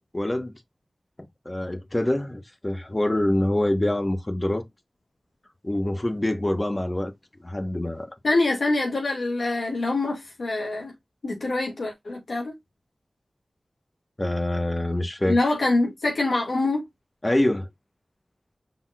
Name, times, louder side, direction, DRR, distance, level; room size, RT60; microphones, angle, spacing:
voice 1, 0.1-0.5 1.4-4.6 5.6-7.1 7.4-8.1 14.2-15.4 17.2-17.7, left 1 dB, 25° left, 1.1 m, -25 dB
voice 2, 8.2-10.9 11.2-12.5 15.3-16.9, left 2 dB, 85° left, 2.0 m, -25 dB
5.7 x 3.9 x 2.4 m
wide cardioid pair, 75°, 0 cm